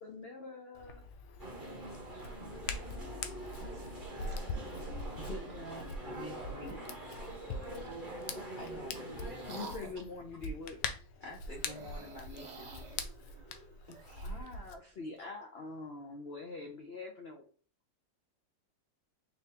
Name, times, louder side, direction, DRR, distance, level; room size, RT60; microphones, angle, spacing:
voice 1, 0.0-1.0 6.6-6.7 7.3-7.4 9.5-10.8 14.2-17.5, left 3 dB, 70° left, 0.6 m, -44 dB
Hands, 0.7-14.8, left 3 dB, 85° left, 1.3 m, -43 dB
sound 1, 1.4-9.8, right 1 dB, 30° right, 1.4 m, -44 dB
voice 2, 2.4-2.9 3.2-3.3 3.6-3.8 4.1-5.0, right 3 dB, 55° right, 1.6 m, -57 dB
voice 3, 5.2-7.3 8.6-9.3 11.2-13.1 13.9-14.3 15.0-15.1, left 1 dB, 35° left, 0.8 m, -48 dB
sound 2, 7.5-8.0 8.7-10.1 11.5-14.6, right 4 dB, 75° right, 0.4 m, -51 dB
4.1 x 3.8 x 2.8 m
omnidirectional pair, 1.9 m